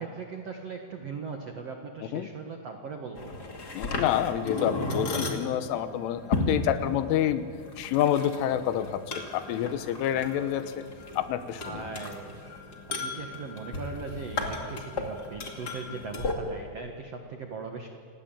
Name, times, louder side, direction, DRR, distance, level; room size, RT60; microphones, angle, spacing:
voice 1, 0.0-3.3 11.5-12.4 13.0-18.0, right 4 dB, 85° right, 3 dB, 1.3 m, -39 dB
sound 1, 3.2-16.3, left 2 dB, 35° left, 1.7 m, -35 dB
voice 2, 3.7-7.4 7.8-10.9 11.2-11.8, left 11 dB, 85° left, 11 dB, 3.6 m, -28 dB
29.0 x 18.5 x 8.9 m, 2.2 s
omnidirectional pair, 5.6 m